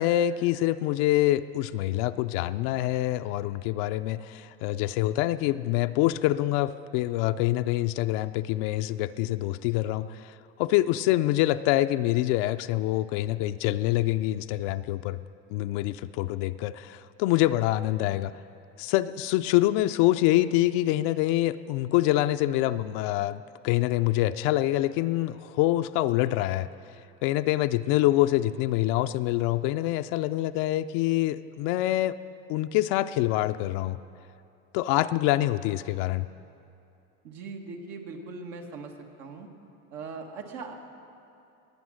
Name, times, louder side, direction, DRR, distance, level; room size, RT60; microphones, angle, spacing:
voice 1, 0.0-15.2 15.5-18.3 18.8-26.7 27.2-32.2 32.5-34.0 34.7-36.3, left 15 dB, 85° left, 9 dB, 0.5 m, -25 dB
voice 2, 37.2-38.9 39.2-39.5 39.9-40.7, right 4 dB, 90° right, 3 dB, 1.7 m, -40 dB
19.5 x 8.8 x 6.3 m, 2.6 s
cardioid pair, 120°, 30 cm